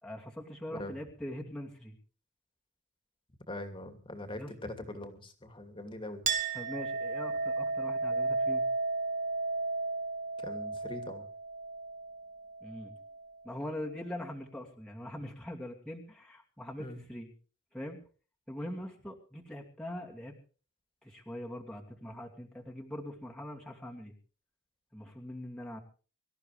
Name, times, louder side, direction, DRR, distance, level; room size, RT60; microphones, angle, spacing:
voice 1, 0.0-2.0 4.4-4.5 6.5-8.6 12.6-13.0 13.4-17.3 17.7-18.0 18.5-20.3 21.0-24.1 24.9-25.8, left 1 dB, 5° left, -2 dB, 2.6 m, -42 dB
voice 2, 3.5-6.2 10.4-11.3 16.8-17.0, left 1 dB, 25° left, 7 dB, 2.7 m, -42 dB
Chink clink, 6.3-13.3, right 3 dB, 40° right, 2.4 m, -34 dB
24.5 x 14.0 x 3.4 m, 0.38 s
head